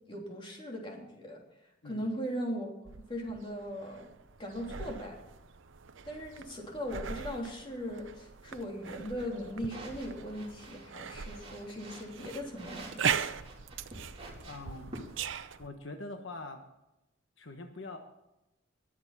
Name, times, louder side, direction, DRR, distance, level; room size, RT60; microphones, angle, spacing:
voice 1, 0.1-1.4 1.8-2.7 3.1-4.1 4.4-5.2 6.0-13.3, equal, 25° left, -1 dB, 3.4 m, -39 dB
voice 2, 1.8-2.1 14.4-15.0 15.6-16.6 17.4-18.0, left 2 dB, 75° left, 5 dB, 1.3 m, -43 dB
sound 1, 2.9-15.7, right 7 dB, 80° right, 0.7 m, -40 dB
sound 2, 9.6-15.2, right 2 dB, 30° right, 3.4 m, -48 dB
21.5 x 8.1 x 4.2 m, 0.93 s
head